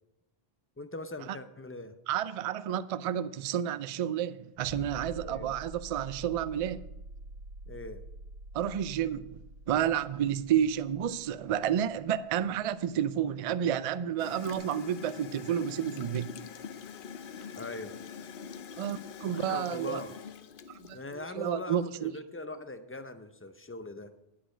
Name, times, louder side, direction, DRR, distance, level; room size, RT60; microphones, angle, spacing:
voice 1, 0.8-1.9 5.2-5.5 7.7-8.0 17.6-17.9 19.3-20.2 20.9-24.1, left 2 dB, 20° left, 0.4 m, -41 dB
voice 2, 2.1-6.8 8.5-9.4 9.7-16.3 18.8-20.0 20.9-22.1, right 9 dB, 60° right, 0.3 m, -30 dB
sound 1, 4.6-13.0 14.5-14.6, right 1 dB, 75° right, 1.5 m, -47 dB
Gurgling / Toilet flush, 14.2-21.3, left 7 dB, 60° left, 0.8 m, -44 dB
10.0 x 8.6 x 5.0 m
omnidirectional pair, 1.1 m